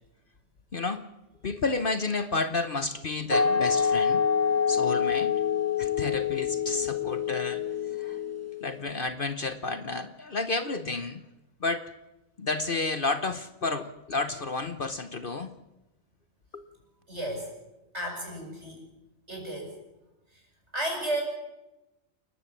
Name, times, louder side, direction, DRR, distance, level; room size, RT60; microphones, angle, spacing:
voice 1, 0.7-1.1 1.4-4.3 4.7-5.4 5.8-7.6 8.0-8.2 8.6-11.2 11.6-11.9 12.4-15.5 16.5-16.6, left 3 dB, 45° left, 10 dB, 1.0 m, -31 dB
sound 1, 3.3-8.7, left 6 dB, 10° left, 1.3 m, -26 dB
voice 2, 17.1-17.5 17.9-18.8 19.3-19.7 20.7-21.2, right 1 dB, 60° right, 0 dB, 7.6 m, -32 dB
29.5 x 12.5 x 7.4 m, 0.99 s
omnidirectional pair, 1.3 m